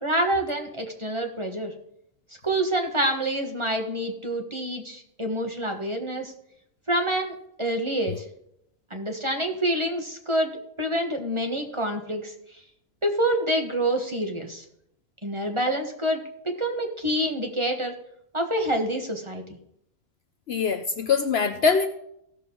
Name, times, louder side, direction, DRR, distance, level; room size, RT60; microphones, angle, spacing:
voice 1, 0.0-1.7 2.4-6.3 6.9-8.2 8.9-10.5 10.8-12.3 13.0-14.6 15.2-17.9 18.3-19.6, right 1 dB, 25° right, 3 dB, 1.4 m, -27 dB
voice 2, 20.5-21.9, left 5 dB, 60° left, 8 dB, 0.9 m, -23 dB
16.5 x 6.6 x 3.8 m, 0.75 s
omnidirectional pair, 1.3 m